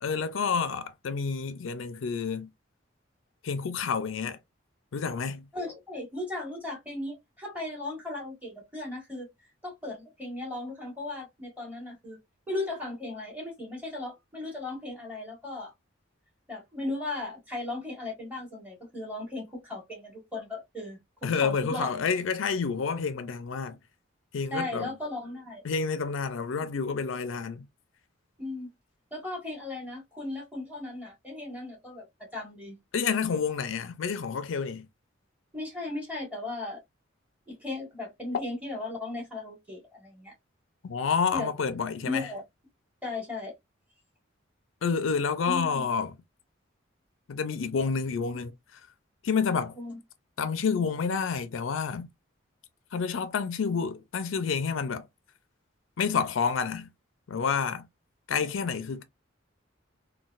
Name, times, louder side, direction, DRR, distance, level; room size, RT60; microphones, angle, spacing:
voice 1, 0.0-2.5 3.4-4.4 4.9-5.5 21.2-23.8 24.3-24.9 25.6-27.7 32.9-34.9 40.8-42.3 44.8-46.1 47.3-48.8 49.2-49.8 50.4-52.1 52.9-55.1 56.0-56.9 57.3-57.8 58.3-59.0, left 5 dB, 80° left, 0.5 m, -29 dB
voice 2, 5.5-9.3 9.6-12.2 12.5-15.7 16.5-21.9 24.5-25.6 28.4-28.7 29.1-32.8 35.5-36.8 37.5-40.3 41.3-41.5 42.0-42.4 43.0-43.5 45.4-45.9 49.7-50.0, left 2 dB, 10° right, 1.6 m, -36 dB
3.9 x 2.3 x 2.4 m
head